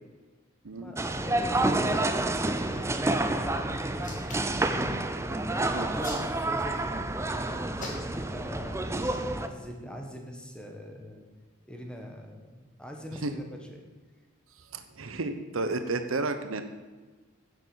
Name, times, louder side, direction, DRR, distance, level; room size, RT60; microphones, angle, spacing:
voice 1, 0.8-2.1 2.4-4.2 4.6-9.0 9.3-11.3 11.6-13.8, equal, 5° left, 2 dB, 1.4 m, -42 dB
sound 1, 1.0-9.5, right 2 dB, 15° right, 0.6 m, -29 dB
Hands, 3.9-4.6 5.6-6.8 7.8-8.3 8.9-9.2, left 3 dB, 40° left, 2.4 m, -42 dB
voice 2, 14.6-16.6, right 3 dB, 85° right, 8 dB, 0.9 m, -32 dB
9.9 x 7.2 x 7.0 m, 1.3 s
head